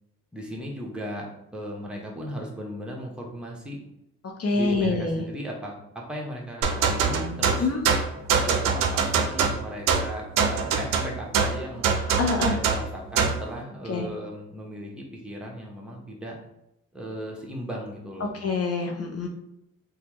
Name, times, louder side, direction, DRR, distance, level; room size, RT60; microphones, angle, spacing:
voice 1, 0.3-1.3 1.5-3.8 4.5-7.7 8.3-11.9 12.4-16.4 16.9-18.3, equal, 5° right, -2 dB, 0.9 m, -36 dB
voice 2, 4.4-5.2 7.6-7.8 12.0-12.6 13.9-14.1 18.2-19.3, left 3 dB, 45° left, 1 dB, 0.6 m, -26 dB
sound 1, 6.6-13.5, right 5 dB, 70° right, 0.5 m, -24 dB
3.3 x 2.2 x 3.0 m, 0.83 s
supercardioid pair, 50°, 34 cm